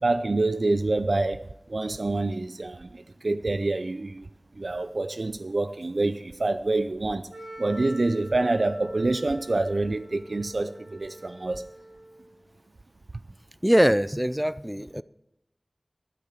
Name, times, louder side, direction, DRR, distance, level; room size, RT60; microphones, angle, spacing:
voice 1, 0.0-4.3 4.6-7.3 7.6-11.6, right 2 dB, 75° right, 0.4 m, -27 dB
Wind instrument woodwind instrument, 7.3-12.4, right 1 dB, 55° right, 3.3 m, -44 dB
voice 2, 13.6-15.0, equal, 10° right, 0.4 m, -22 dB
12.0 x 9.5 x 5.7 m
wide cardioid pair, 45°, 0 cm